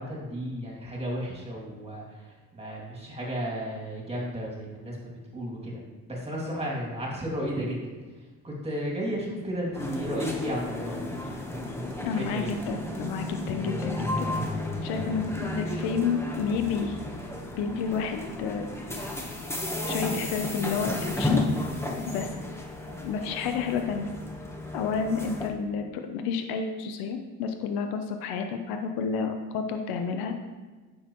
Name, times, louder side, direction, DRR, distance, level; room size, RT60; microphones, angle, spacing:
voice 1, 0.0-2.0 2.5-5.0 5.3-5.8 6.1-7.9 8.4-11.4 12.1-12.7 22.9-23.0, equal, 15° right, -3 dB, 2.5 m, -33 dB
sound 1, 9.7-25.5, left 1 dB, 5° left, 1.1 m, -33 dB
voice 2, 12.0-14.3 14.8-17.0 17.6-18.7 19.9-21.4 22.1-22.4 23.0-24.1 24.7-30.4, left 6 dB, 90° left, 6 dB, 0.8 m, -30 dB
9.4 x 6.5 x 3.1 m, 1.3 s
cardioid pair, 110°, 36 cm